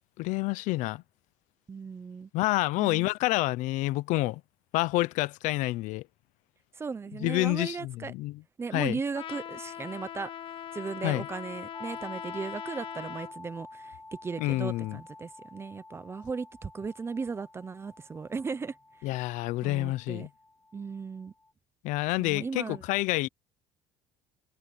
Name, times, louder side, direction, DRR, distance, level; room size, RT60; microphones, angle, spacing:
voice 1, 0.2-1.0 2.3-4.4 4.7-6.0 7.2-8.4 8.7-9.0 11.0-11.3 14.4-15.0 19.0-20.3 21.8-23.3, left 19 dB, 80° left, 0.7 m, -28 dB
voice 2, 1.7-2.3 2.8-3.1 6.7-8.1 8.6-10.3 10.7-18.7 19.0-19.2 19.6-20.3 20.7-21.3 22.2-22.8, right 5 dB, 20° right, 0.8 m, -37 dB
Trumpet, 9.1-13.3, left 10 dB, 45° left, 1.1 m, -41 dB
sound 1, 11.7-21.5, left 2 dB, 10° left, 5.2 m, -49 dB
cardioid pair, 145°, 13 cm